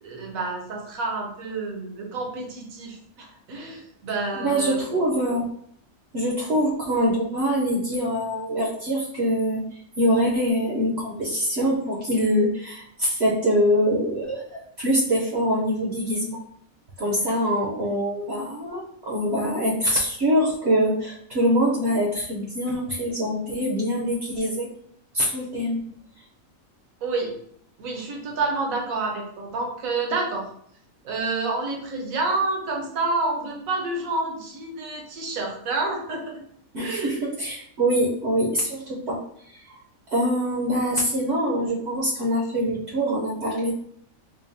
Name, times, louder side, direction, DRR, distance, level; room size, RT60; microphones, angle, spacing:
voice 1, 0.0-4.8 27.0-27.3 27.8-30.5 31.0-36.3 36.8-37.2, right 3 dB, 80° right, 0 dB, 1.3 m, -28 dB
voice 2, 4.4-5.5 6.1-9.6 10.0-16.4 17.0-24.7 25.1-25.8 36.7-39.2 39.7-39.8 40.1-43.7, equal, 60° right, -3 dB, 0.8 m, -24 dB
5.0 x 2.2 x 2.6 m, 0.65 s
omnidirectional pair, 1.4 m